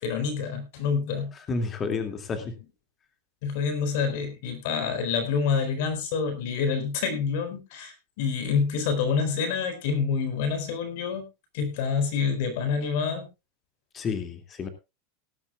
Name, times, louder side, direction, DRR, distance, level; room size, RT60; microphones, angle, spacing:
voice 1, 0.0-1.3 3.4-11.3 11.5-13.3, left 6 dB, 60° left, 8 dB, 4.3 m, -27 dB
voice 2, 1.5-2.4 13.9-14.7, left 4 dB, 25° left, 7 dB, 2.4 m, -30 dB
18.5 x 12.5 x 2.4 m, 0.26 s
supercardioid pair, 155°, 0 cm